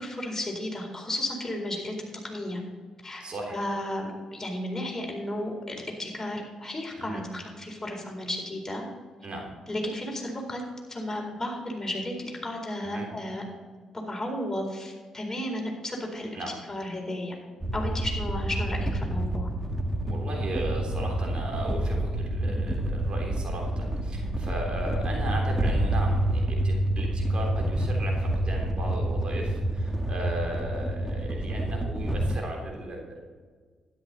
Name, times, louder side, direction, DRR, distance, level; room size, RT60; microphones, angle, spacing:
voice 1, 0.0-1.9 2.2-2.6 3.0-3.2 3.5-8.9 9.7-10.6 10.9-13.4 14.1-16.3 16.7-17.3 17.7-19.5, left 1 dB, 20° left, 0 dB, 4.4 m, -33 dB
voice 2, 3.2-3.6 7.0-7.2 9.2-9.5 12.8-13.1 16.3-16.5 20.0-33.2, right 1 dB, 50° right, 0 dB, 3.4 m, -36 dB
sound 1, 17.6-32.4, right 1 dB, 10° right, 1.8 m, -28 dB
12.5 x 11.5 x 4.3 m, 1.5 s
hypercardioid pair, 40°, 2 cm